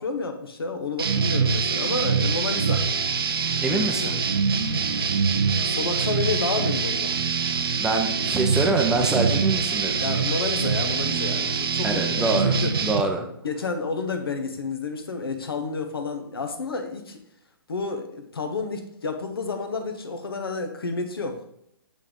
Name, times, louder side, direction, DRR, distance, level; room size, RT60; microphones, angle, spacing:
voice 1, 0.0-2.9 3.7-4.2 5.6-7.1 10.0-12.7 13.4-17.2 17.7-21.5, left 4 dB, 70° left, 6 dB, 1.0 m, -30 dB
sound 1, 1.0-13.0, right 5 dB, 65° right, 0.6 m, -24 dB
voice 2, 3.6-4.2 7.8-10.0 11.8-12.6 12.8-13.3, right 3 dB, 5° right, 2 dB, 0.6 m, -25 dB
8.0 x 3.6 x 3.7 m, 0.74 s
figure-of-eight pair, 130°, 13 cm